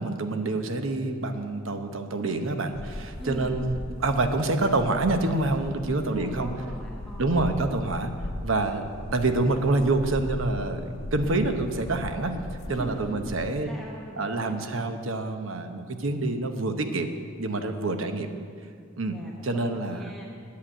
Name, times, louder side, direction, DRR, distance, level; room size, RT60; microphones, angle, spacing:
voice 1, 0.0-3.7 4.0-6.5 7.2-8.1 8.4-12.4 12.7-13.7 14.2-18.3 19.0-20.1, right 2 dB, 70° right, 7 dB, 0.9 m, -27 dB
sound 1, 2.7-13.6, left 1 dB, 85° left, 0.7 m, -38 dB
voice 2, 3.2-3.6 6.1-7.7 12.7-15.1 17.9-18.4 19.1-20.3, equal, ahead, -3 dB, 1.0 m, -42 dB
9.7 x 8.7 x 8.8 m, 2.2 s
head